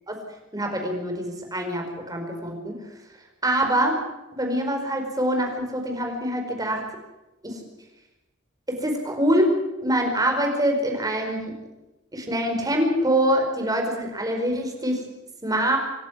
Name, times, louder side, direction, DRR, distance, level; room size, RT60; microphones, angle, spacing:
voice 1, 0.5-2.9 3.4-4.0 4.4-6.8 7.4-7.6 8.8-9.5 9.8-11.6 12.1-15.0 15.4-15.8, right 1 dB, 20° right, 2 dB, 4.8 m, -24 dB
26.5 x 12.0 x 9.5 m, 1.0 s
head